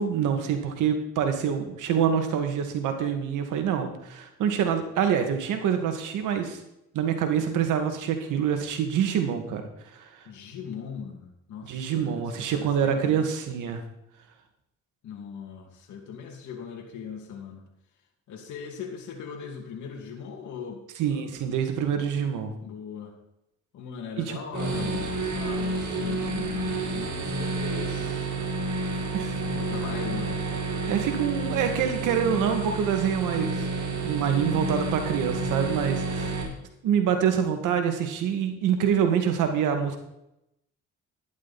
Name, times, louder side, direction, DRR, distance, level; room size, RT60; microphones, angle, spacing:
voice 1, 0.0-6.6 6.9-9.6 9.9-10.1 11.6-13.8 21.0-22.5 24.2-24.4 29.1-29.4 30.9-33.7 34.0-36.4 36.8-40.0, right 8 dB, 90° right, 5 dB, 2.4 m, -26 dB
voice 2, 10.2-13.3 15.0-17.7 18.3-20.8 21.1-21.3 22.6-23.1 23.7-28.3 29.4-30.4, left 6 dB, 75° left, 0 dB, 2.7 m, -39 dB
sound 1, 24.5-36.4, right 3 dB, 70° right, 4.7 m, -30 dB
12.0 x 11.5 x 4.4 m, 0.84 s
cardioid pair, 90°, 30 cm